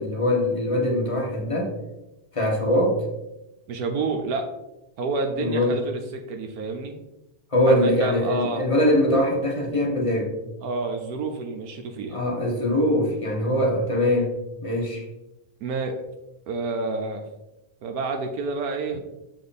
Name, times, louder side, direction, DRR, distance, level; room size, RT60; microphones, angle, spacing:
voice 1, 0.0-1.7 2.3-3.0 5.4-5.8 7.5-10.4 12.1-14.3 14.6-15.0, left 1 dB, 20° left, -1 dB, 1.3 m, -22 dB
voice 2, 3.7-4.5 5.0-7.0 7.7-8.6 10.6-12.2 15.6-16.0 16.5-17.2 17.8-19.0, right 3 dB, 75° right, 4 dB, 1.2 m, -29 dB
6.9 x 3.9 x 4.2 m, 0.93 s
omnidirectional pair, 1.6 m